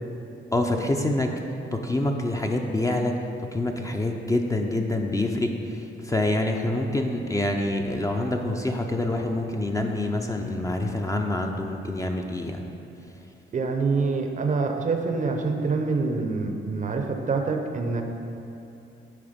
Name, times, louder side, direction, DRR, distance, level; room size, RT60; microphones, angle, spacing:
voice 1, 0.5-1.3 1.7-12.6, left 1 dB, 15° left, 2 dB, 0.6 m, -26 dB
voice 2, 13.5-18.0, right 4 dB, 40° right, 4 dB, 0.7 m, -26 dB
10.0 x 3.5 x 5.1 m, 2.8 s
cardioid pair, 90°, 20 cm